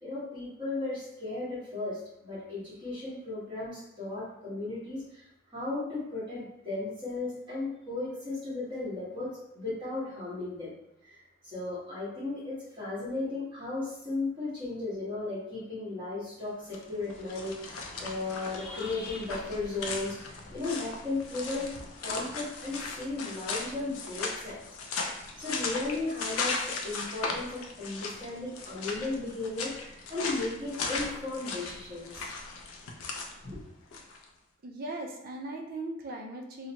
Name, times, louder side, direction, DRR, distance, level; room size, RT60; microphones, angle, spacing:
voice 1, 0.0-5.3 5.5-10.7 11.0-21.7 22.0-24.6 25.1-32.3 33.4-33.6, left 2 dB, 25° right, -10 dB, 1.3 m, -35 dB
sound 1, 16.6-34.2, left 4 dB, 90° left, 0.4 m, -37 dB
voice 2, 34.6-36.7, right 2 dB, 45° right, 1 dB, 0.4 m, -38 dB
2.9 x 2.0 x 2.9 m, 0.82 s
head